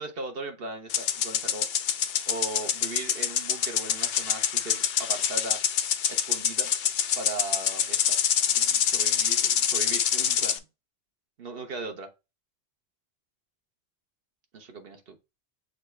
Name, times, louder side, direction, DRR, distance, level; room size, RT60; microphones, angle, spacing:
voice 1, 0.0-1.7 2.3-5.6 6.1-6.7 7.1-8.2 8.5-10.6 11.4-12.1 14.5-15.2, right 3 dB, 60° right, 1.2 m, -38 dB
sound 1, 0.9-10.6, left 9 dB, 65° left, 0.7 m, -26 dB
6.5 x 2.4 x 3.2 m
omnidirectional pair, 1.2 m